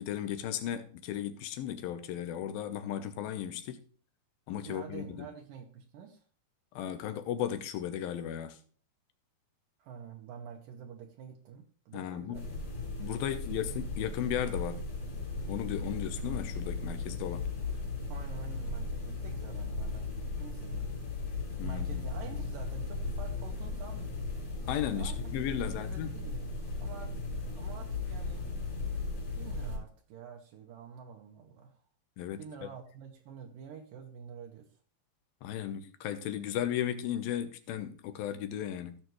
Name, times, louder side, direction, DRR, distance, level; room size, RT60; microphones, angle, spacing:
voice 1, 0.0-3.8 4.5-5.3 6.7-8.6 11.9-12.5 13.0-14.8 15.5-17.5 21.6-22.1 24.7-26.1 32.2-32.4 35.4-39.0, left 10 dB, 80° left, 2.7 m, -35 dB
voice 2, 4.6-6.2 9.8-12.7 18.1-20.9 21.6-24.3 24.9-25.4 25.6-26.5 26.8-28.5 29.4-31.8 32.4-34.7, right 7 dB, 75° right, 2.4 m, -48 dB
sound 1, 12.3-29.8, left 3 dB, 45° left, 3.8 m, -36 dB
15.5 x 6.6 x 3.1 m
omnidirectional pair, 4.2 m